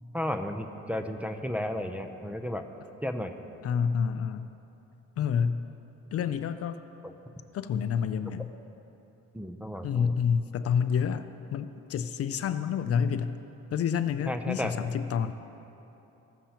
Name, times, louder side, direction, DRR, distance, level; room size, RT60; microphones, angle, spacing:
voice 1, 0.1-2.6 3.0-3.3 7.0-7.1 9.3-10.1 14.3-14.7, left 1 dB, 5° right, 4 dB, 0.5 m, -33 dB
voice 2, 3.6-4.5 5.2-5.6 6.1-6.8 7.5-8.5 9.8-11.3 11.5-13.4 13.7-15.3, left 7 dB, 55° left, 11 dB, 0.4 m, -28 dB
16.0 x 7.3 x 2.9 m, 3.0 s
cardioid pair, 90°, 30 cm